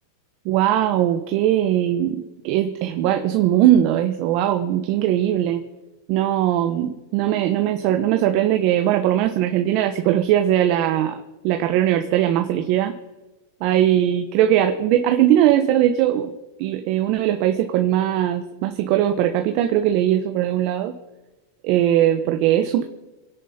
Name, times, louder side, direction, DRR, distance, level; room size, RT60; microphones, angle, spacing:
voice 1, 0.4-5.6 6.1-11.1 11.4-12.9 13.6-16.3 16.6-21.0 21.6-22.8, right 12 dB, 45° right, 6 dB, 1.1 m, -20 dB
27.0 x 10.5 x 4.4 m, 1.1 s
supercardioid pair, 145°, 0 cm